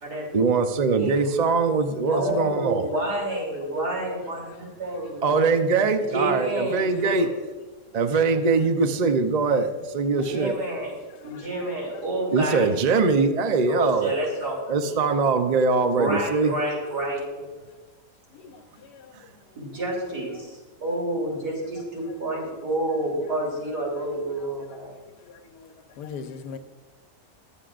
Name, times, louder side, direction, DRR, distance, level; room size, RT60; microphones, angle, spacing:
voice 1, 0.3-2.8 5.2-7.3 7.9-10.5 12.3-14.1 14.7-16.5, right 4 dB, 45° right, 0.5 m, -22 dB
voice 2, 1.0-1.3 2.1-5.3 6.1-7.3 10.1-12.7 13.2-13.4 13.7-15.0 15.9-17.5 19.6-24.9, right 1 dB, 75° right, 3.7 m, -29 dB
voice 3, 26.0-26.6, left 6 dB, 85° left, 1.4 m, -40 dB
20.5 x 7.4 x 2.5 m
omnidirectional pair, 1.7 m